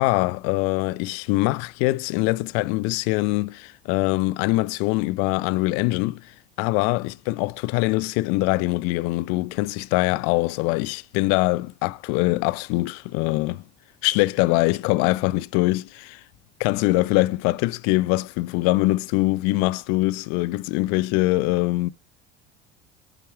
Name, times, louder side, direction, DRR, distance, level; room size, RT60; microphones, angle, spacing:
voice 1, 0.0-13.6 14.0-16.2 16.6-21.9, left 21 dB, 45° left, 0.4 m, -23 dB
8.3 x 5.0 x 4.4 m
figure-of-eight pair, 65°, 35 cm